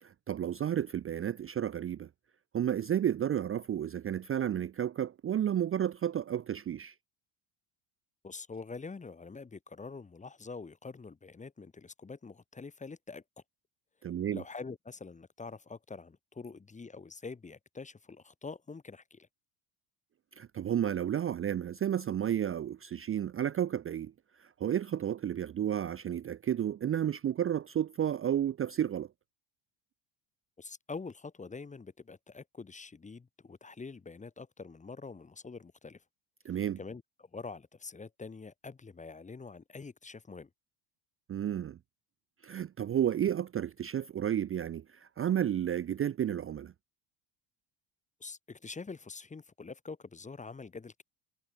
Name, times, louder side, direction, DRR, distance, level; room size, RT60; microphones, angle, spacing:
voice 1, 0.0-2.1 2.5-6.9 14.0-14.4 20.4-24.1 24.4-29.1 36.4-36.8 41.3-41.8 42.4-46.7, right 10 dB, 25° right, 0.6 m, -32 dB
voice 2, 8.2-13.2 14.3-19.3 30.6-36.0 36.8-40.5 48.2-51.0, left 4 dB, 15° left, 1.1 m, -45 dB
cardioid pair, 125°, 50 cm